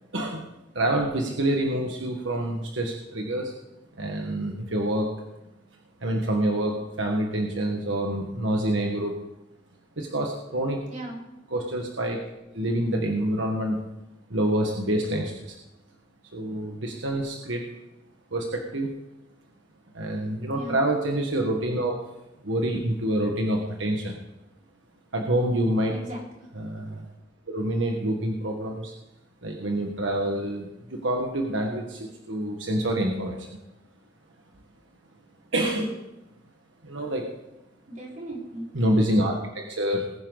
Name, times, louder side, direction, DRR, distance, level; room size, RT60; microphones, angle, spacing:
voice 1, 0.1-0.4 0.7-3.5 4.0-5.1 6.0-9.2 10.0-10.8 11.5-12.2 12.5-13.8 14.3-15.6 16.3-17.6 18.3-18.9 19.9-21.9 22.4-24.2 25.1-25.9 26.6-27.1 27.5-28.9 29.4-33.6 35.5-36.0 36.8-37.3 38.7-40.1, right 1 dB, 80° right, 1 dB, 1.6 m, -27 dB
voice 2, 10.9-11.2 20.5-20.9 25.9-26.5 37.9-38.7, right 1 dB, 45° right, -4 dB, 4.8 m, -38 dB
20.5 x 9.9 x 4.0 m, 0.93 s
head